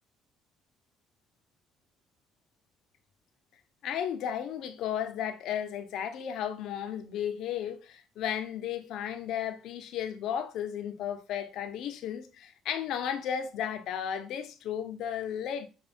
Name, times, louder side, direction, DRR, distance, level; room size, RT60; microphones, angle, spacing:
voice 1, 3.8-15.7, left 9 dB, 75° left, 1.0 m, -34 dB
6.8 x 3.4 x 4.4 m
cardioid pair, 95°, 0 cm